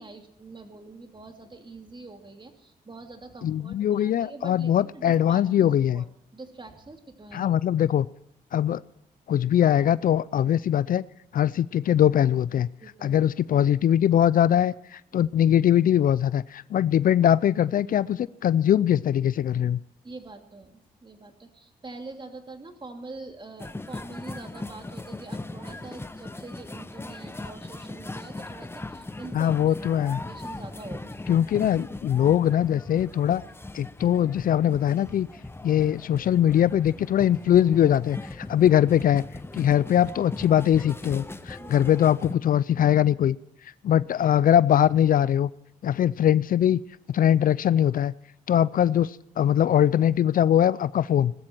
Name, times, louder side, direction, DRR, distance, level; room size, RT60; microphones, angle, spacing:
voice 1, 0.0-6.1 6.3-7.6 12.8-13.2 15.1-15.2 20.0-29.7 30.3-31.4 41.6-41.8 43.9-44.0, right 3 dB, 30° right, 5 dB, 2.7 m, -44 dB
voice 2, 3.4-6.0 7.3-8.1 8.5-8.8 9.3-11.0 11.3-12.7 13.0-19.8 29.3-30.2 31.3-33.4 33.7-35.3 35.6-39.2 39.5-43.4 43.8-45.5 45.8-46.8 47.1-48.1 48.5-51.3, left 10 dB, 60° left, 20 dB, 0.4 m, -21 dB
sound 1, 23.6-42.4, left 2 dB, 15° left, 1.0 m, -39 dB
19.5 x 13.0 x 4.5 m, 0.82 s
supercardioid pair, 55°, 16 cm